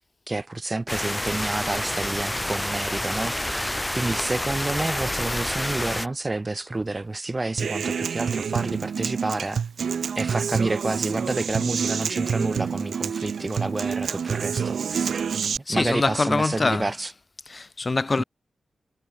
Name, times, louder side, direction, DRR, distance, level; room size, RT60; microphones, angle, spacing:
voice 1, 0.3-9.6 10.2-15.2 15.7-17.1 18.2-18.3, right 2 dB, 25° right, 0.5 m, -29 dB
sound 1, 0.9-6.1, left 1 dB, 10° left, 1.1 m, -28 dB
Human voice / Acoustic guitar, 7.6-15.6, right 6 dB, 80° right, 1.1 m, -27 dB
voice 2, 15.7-16.8 17.5-18.2, left 3 dB, 30° left, 0.4 m, -24 dB
wide cardioid pair, 120°, 0 cm